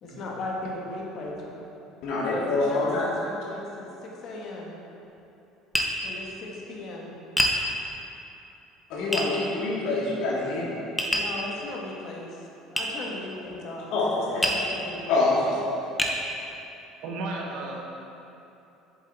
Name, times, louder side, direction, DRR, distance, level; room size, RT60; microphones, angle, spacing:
voice 1, 0.0-1.6 2.7-4.7 6.0-7.2 11.1-12.4 12.7-13.9 14.3-15.2, left 2 dB, 35° left, -2 dB, 1.2 m, -37 dB
voice 2, 2.0-3.1 8.9-10.8 13.9-14.6 15.1-15.6, left 2 dB, 60° left, -5 dB, 1.9 m, -25 dB
Tap, 5.7-5.9 7.4-7.6 9.1-9.3 11.0-11.3 12.8-12.9 14.4-14.7 15.4-15.5 16.0-16.2, equal, 5° left, 0.6 m, -25 dB
voice 3, 17.0-17.8, right 2 dB, 55° right, 0 dB, 1.1 m, -33 dB
7.2 x 7.2 x 4.1 m, 2.9 s
cardioid pair, 175°, 0 cm